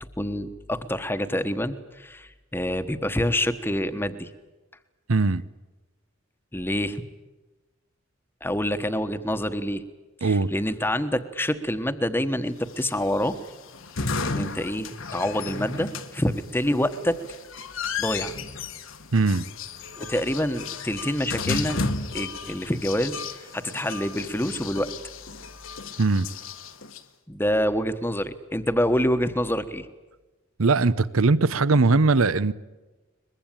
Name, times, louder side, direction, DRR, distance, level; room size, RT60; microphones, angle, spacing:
voice 1, 0.2-4.3 6.5-7.0 8.4-9.8 10.2-13.4 14.3-17.2 18.0-18.3 20.0-21.8 22.1-24.9 27.3-29.9, equal, 10° left, 1.2 m, -27 dB
voice 2, 5.1-5.4 10.2-10.5 19.1-19.4 26.0-26.3 30.6-32.5, right 3 dB, 85° right, 0.8 m, -20 dB
sound 1, 12.7-27.0, left 4 dB, 75° left, 1.5 m, -34 dB
23.0 x 21.5 x 9.0 m
head